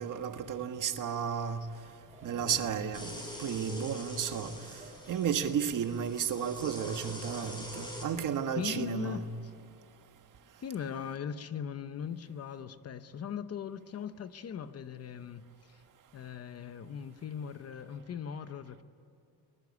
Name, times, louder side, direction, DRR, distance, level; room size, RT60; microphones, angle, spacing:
voice 1, 0.0-1.6 2.2-3.1 3.4-4.5 5.1-9.3, right 8 dB, 55° right, 1.5 m, -33 dB
sound 1, 1.6-8.5, right 2 dB, 20° right, 4.8 m, -54 dB
sound 2, 2.9-8.1, left 1 dB, 10° left, 6.6 m, -45 dB
voice 2, 8.5-9.2 10.6-15.8 16.1-18.8, left 7 dB, 40° left, 0.9 m, -39 dB
24.0 x 20.5 x 9.7 m
cardioid pair, 165°, 37 cm